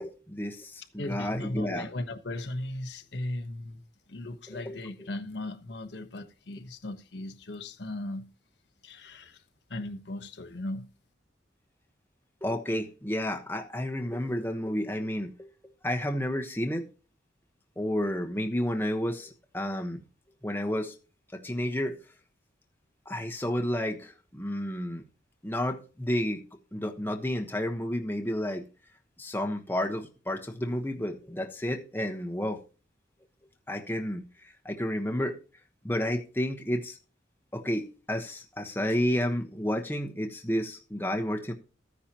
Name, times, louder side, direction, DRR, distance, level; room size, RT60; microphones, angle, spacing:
voice 1, 0.0-1.9 4.5-4.8 12.4-16.9 17.8-20.0 20.4-20.9 21.3-22.0 23.0-25.0 25.4-26.4 26.7-28.6 29.2-32.6 33.7-35.4 35.8-37.0 37.5-41.5, equal, 10° left, 1.2 m, -31 dB
voice 2, 1.0-3.8 4.1-8.3 8.8-9.4 9.7-10.9, left 1 dB, 70° left, 1.2 m, -37 dB
14.5 x 10.0 x 3.0 m
head